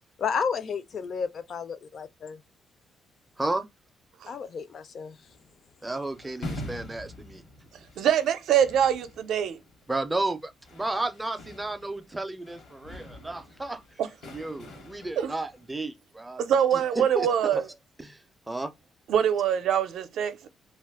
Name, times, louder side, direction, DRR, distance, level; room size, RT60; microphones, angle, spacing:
voice 1, 0.2-2.4 4.3-5.2, left 6 dB, 50° left, 0.4 m, -32 dB
sound 1, 5.2-15.7, left 1 dB, 70° left, 1.1 m, -45 dB
voice 2, 5.8-7.4 9.9-13.8 14.3-16.4 16.7-17.6 18.0-18.7, right 2 dB, 10° right, 0.4 m, -33 dB
voice 3, 8.0-9.6 14.0-14.1 15.2-15.3 16.4-17.6 19.1-20.5, right 9 dB, 80° right, 0.4 m, -24 dB
2.5 x 2.3 x 3.5 m
cardioid pair, 130°, 0 cm